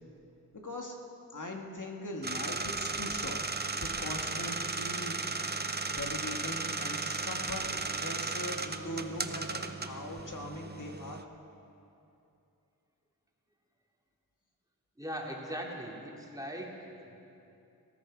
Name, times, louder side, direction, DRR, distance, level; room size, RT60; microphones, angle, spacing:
voice 1, 0.5-0.9 1.3-5.2 5.4-7.7 8.0-11.3, left 1 dB, 55° left, 1 dB, 1.9 m, -41 dB
sound 1, 2.2-11.2, right 3 dB, 25° right, 0.8 m, -35 dB
voice 2, 15.0-17.2, equal, 10° right, -1 dB, 2.7 m, -40 dB
19.0 x 14.5 x 4.8 m, 2.8 s
cardioid pair, 55°, 38 cm